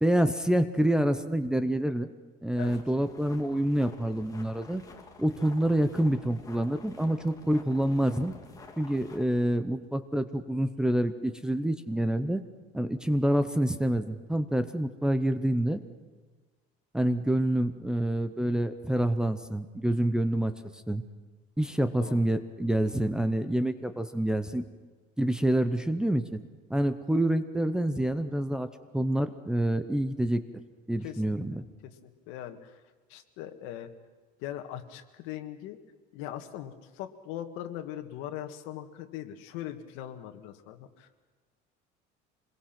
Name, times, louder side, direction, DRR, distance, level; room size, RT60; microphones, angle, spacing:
voice 1, 0.0-2.1 2.4-4.8 5.2-8.3 8.8-12.4 12.7-15.8 16.9-20.5 20.9-21.0 21.6-24.6 25.2-26.4 26.7-28.7 28.9-30.4 30.9-31.6, right 1 dB, 5° right, 7 dB, 0.7 m, -27 dB
sound 1, 2.6-9.2, left 4 dB, 15° left, 1.9 m, -50 dB
voice 2, 31.5-32.8 33.1-33.9 34.4-35.8 36.1-41.3, left 12 dB, 75° left, 6 dB, 1.9 m, -40 dB
26.5 x 21.5 x 6.0 m, 1.4 s
cardioid pair, 165°, 21 cm